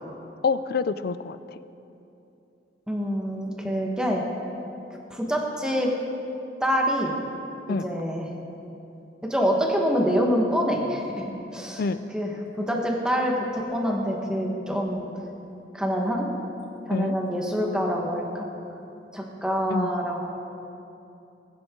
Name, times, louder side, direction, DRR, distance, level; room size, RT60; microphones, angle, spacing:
voice 1, 0.4-1.6 7.7-7.9 11.8-12.1 16.9-17.2 19.7-19.9, left 4 dB, 55° left, 14 dB, 0.4 m, -27 dB
voice 2, 2.9-4.2 5.1-5.9 6.6-7.1 7.8-8.3 9.2-11.8 12.1-12.3 12.6-15.1 15.7-16.3 16.8-18.5 19.1-20.2, equal, 5° right, -1 dB, 1.5 m, -26 dB
20.5 x 9.8 x 3.8 m, 2.8 s
head